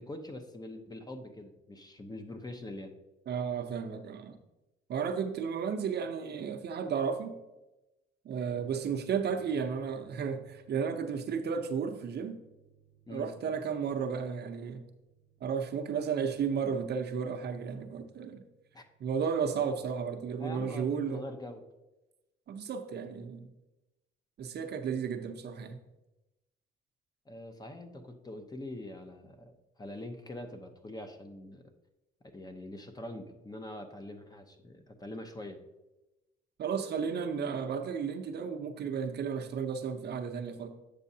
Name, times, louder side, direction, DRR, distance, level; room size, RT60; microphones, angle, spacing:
voice 1, 0.0-2.9 13.1-13.3 18.7-18.8 20.4-21.6 27.3-31.7 32.3-35.6, left 1 dB, 20° left, 6 dB, 0.7 m, -44 dB
voice 2, 3.3-4.4 4.9-7.4 8.2-12.4 13.1-14.8 15.4-18.4 19.0-21.2 22.5-23.5 24.4-25.8 36.6-40.7, right 6 dB, 55° right, 6 dB, 0.7 m, -33 dB
sound 1, 8.6-21.5, right 7 dB, 85° left, 2.0 m, -64 dB
8.3 x 6.2 x 2.7 m, 1.0 s
cardioid pair, 90°, 20 cm